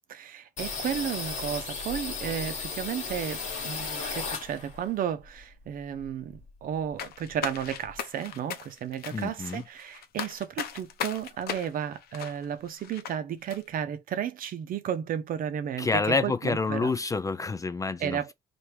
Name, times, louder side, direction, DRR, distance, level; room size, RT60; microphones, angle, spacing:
voice 1, 0.1-16.9 18.0-18.3, right 9 dB, 55° right, 0.7 m, -33 dB
sound 1, 0.6-4.9 5.2-6.6 6.9-7.0 7.3-8.0, left 4 dB, 45° left, 1.5 m, -35 dB
sound 2, 7.0-13.2 13.5-13.6, left 9 dB, 65° left, 0.7 m, -38 dB
voice 2, 9.1-9.6 15.8-18.2, left 4 dB, 20° left, 0.4 m, -28 dB
3.3 x 2.6 x 4.4 m
cardioid pair, 110°, 17 cm